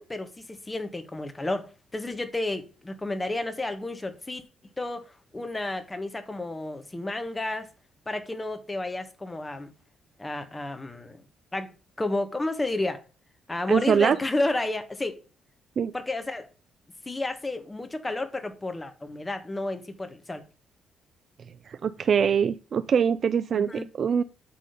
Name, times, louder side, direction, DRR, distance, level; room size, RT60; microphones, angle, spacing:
voice 1, 0.0-4.4 4.8-5.1 5.3-7.7 8.0-9.7 10.2-11.2 11.5-11.7 12.0-13.0 13.5-15.2 15.9-16.5 17.0-20.4 23.5-23.9, left 2 dB, 20° left, 1.6 m, -31 dB
voice 2, 13.7-14.2 15.8-15.9 21.7-23.7 24.0-24.2, right 7 dB, 50° right, 0.5 m, -23 dB
8.4 x 3.9 x 6.7 m
cardioid pair, 90°, 0 cm